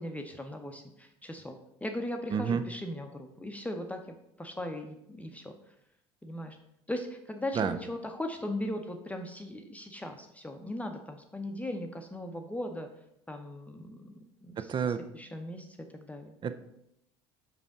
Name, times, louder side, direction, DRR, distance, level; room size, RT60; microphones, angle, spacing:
voice 1, 0.0-4.0 4.4-5.7 6.2-6.6 6.9-12.9 13.3-14.7 15.1-16.3, left 1 dB, 10° left, 4 dB, 0.7 m, -38 dB
voice 2, 2.3-2.6 7.6-7.8 14.6-15.0 16.4-16.6, right 7 dB, 30° right, 11 dB, 0.5 m, -29 dB
5.6 x 5.1 x 3.7 m, 0.78 s
hypercardioid pair, 65°, 14 cm